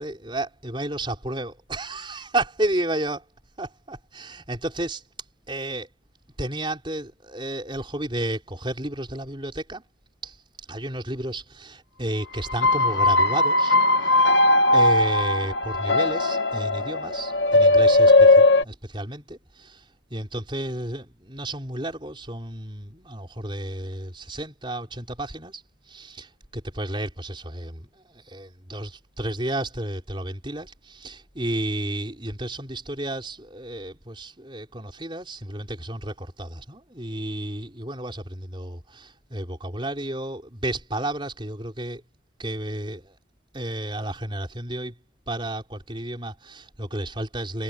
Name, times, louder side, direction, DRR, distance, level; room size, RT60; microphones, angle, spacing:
voice 1, 0.0-3.3 3.6-5.0 5.5-5.9 6.4-9.8 10.2-10.4 10.7-14.3 14.7-42.0 42.4-43.2 43.5-44.9 45.3-47.6, right 1 dB, 25° right, 4.6 m, -32 dB
sound 1, 12.4-18.6, left 2 dB, 55° left, 1.3 m, -18 dB
head